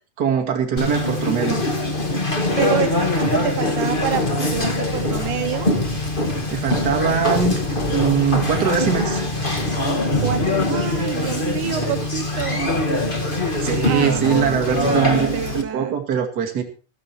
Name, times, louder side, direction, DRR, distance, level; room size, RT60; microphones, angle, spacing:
voice 1, 0.2-1.6 6.5-7.5 7.9-9.2 13.6-16.6, right 7 dB, 35° right, 3 dB, 2.3 m, -22 dB
Conversation, 0.8-15.6, left 2 dB, 25° left, 1.2 m, -22 dB
voice 2, 2.6-5.7 10.2-12.7 13.8-16.0, right 10 dB, 70° right, 7 dB, 2.3 m, -27 dB
14.0 x 13.0 x 4.5 m, 0.35 s
omnidirectional pair, 3.8 m